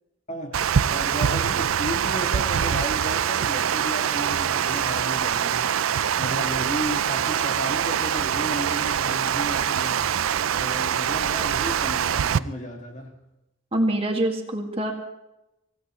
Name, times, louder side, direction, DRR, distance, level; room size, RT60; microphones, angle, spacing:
voice 1, 0.3-10.2 10.5-13.2, left 1 dB, 40° left, 2.3 m, -34 dB
Water, 0.5-12.4, right 8 dB, 90° right, 0.4 m, -24 dB
voice 2, 13.7-14.9, right 1 dB, 30° right, 2.0 m, -24 dB
25.0 x 16.5 x 3.2 m
head